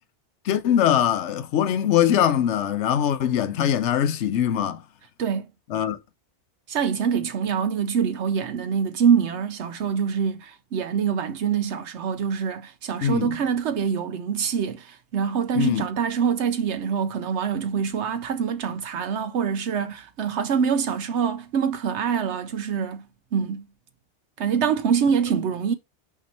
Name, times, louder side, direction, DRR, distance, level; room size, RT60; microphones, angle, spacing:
voice 1, 0.4-4.8 5.7-6.0 13.0-13.4 15.6-15.8, left 10 dB, 85° left, 1.0 m, -22 dB
voice 2, 6.7-23.1 23.3-23.7 24.4-25.7, right 7 dB, 80° right, 1.0 m, -25 dB
5.7 x 4.8 x 4.3 m
omnidirectional pair, 1.2 m